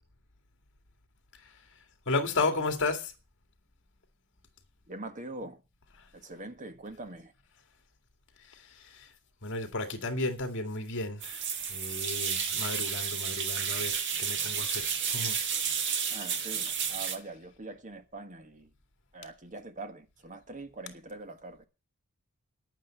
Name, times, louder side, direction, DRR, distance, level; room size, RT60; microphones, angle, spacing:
voice 1, 2.1-3.1 5.9-6.1 8.5-9.1 9.4-15.4, left 3 dB, 55° left, 2.3 m, -33 dB
voice 2, 4.9-5.6 6.1-7.3 16.1-18.7 19.1-21.7, right 2 dB, 35° right, 1.4 m, -43 dB
sound 1, 11.2-17.2, right 7 dB, 55° right, 1.5 m, -31 dB
10.0 x 9.0 x 7.2 m
head